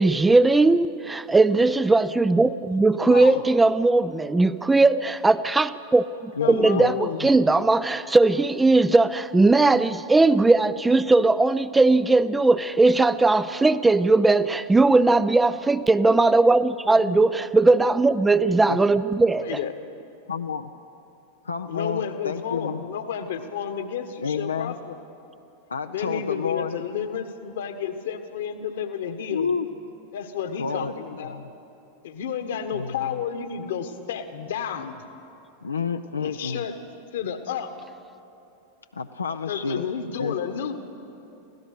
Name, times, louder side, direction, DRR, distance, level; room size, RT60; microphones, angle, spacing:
voice 1, 0.0-19.6, right 3 dB, 10° right, 14 dB, 0.4 m, -19 dB
voice 2, 3.0-3.4 6.4-7.3 16.9-17.3 19.4-19.7 21.7-25.0 25.9-29.5 30.1-31.4 32.0-35.0 36.2-36.8 37.1-37.7 39.5-40.7, left 7 dB, 60° left, 9 dB, 1.5 m, -31 dB
voice 3, 6.4-7.0 18.7-18.8 20.3-20.7 21.4-22.8 24.2-24.7 25.7-26.8 29.3-29.7 30.6-30.9 31.2-31.4 32.7-32.9 35.6-36.6 38.9-39.8 40.2-40.4, left 5 dB, 75° left, 7 dB, 0.6 m, -29 dB
24.0 x 16.5 x 6.7 m, 2.8 s
figure-of-eight pair, 90°, 0 cm